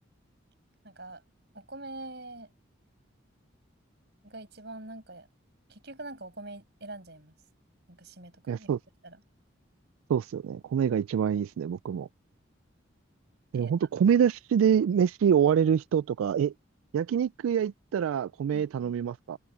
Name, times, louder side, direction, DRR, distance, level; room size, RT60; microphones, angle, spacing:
voice 1, 0.8-1.2 1.5-2.5 4.2-5.3 5.7-7.3 7.9-8.7 9.0-9.2 13.5-13.9 18.5-18.9, right 2 dB, 55° right, 7.2 m, -44 dB
voice 2, 8.5-8.8 10.1-12.1 13.5-16.5 16.9-19.4, right 8 dB, 90° right, 0.3 m, -25 dB
head